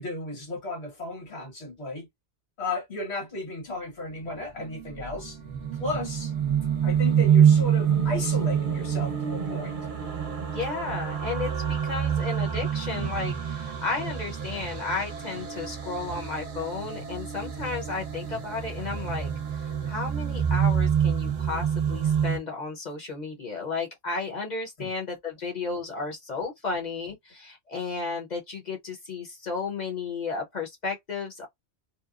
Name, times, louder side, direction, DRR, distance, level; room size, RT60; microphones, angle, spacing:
voice 1, 0.0-2.1 2.6-5.4 5.8-6.3 6.8-9.8 24.8-24.9, left 2 dB, 70° left, 1.6 m, -34 dB
sound 1, 4.4-22.4, right 8 dB, 55° right, 0.8 m, -27 dB
voice 2, 10.5-19.3 19.6-31.5, left 4 dB, 45° left, 0.9 m, -33 dB
2.9 x 2.1 x 2.4 m
omnidirectional pair, 1.1 m